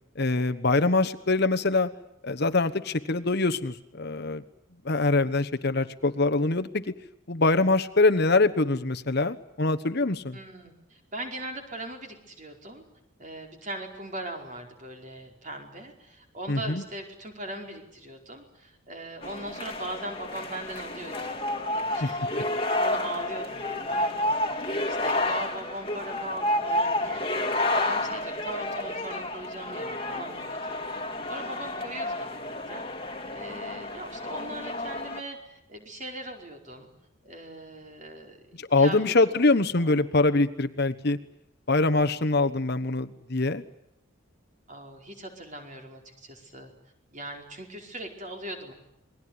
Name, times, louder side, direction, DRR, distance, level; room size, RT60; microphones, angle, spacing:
voice 1, 0.2-1.9 2.2-4.4 4.8-6.8 7.3-10.4 16.5-16.8 22.0-22.1 38.6-41.2 41.7-43.6, left 3 dB, 50° left, 11 dB, 1.1 m, -24 dB
voice 2, 10.3-12.8 13.2-21.4 21.7-22.2 22.7-30.8 31.3-32.4 32.7-32.8 33.3-36.9 37.2-39.0 39.2-39.4 39.8-39.9 44.7-46.7 47.1-48.7, right 1 dB, 35° right, 3 dB, 4.8 m, -40 dB
sound 1, 19.2-35.2, left 1 dB, 25° left, 2.1 m, -30 dB
28.5 x 21.5 x 9.6 m, 0.81 s
head